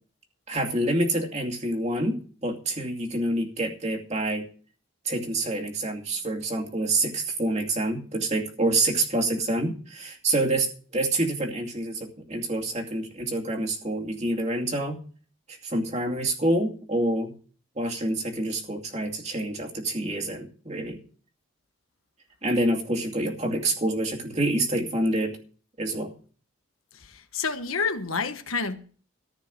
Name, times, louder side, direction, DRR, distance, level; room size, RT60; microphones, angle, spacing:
voice 1, 0.5-4.5 5.0-15.0 15.5-17.3 17.8-21.0 22.4-25.4 25.8-26.1, right 1 dB, 30° right, 2.4 m, -27 dB
voice 2, 26.9-28.8, left 5 dB, 75° left, 1.3 m, -29 dB
14.5 x 5.2 x 9.4 m
head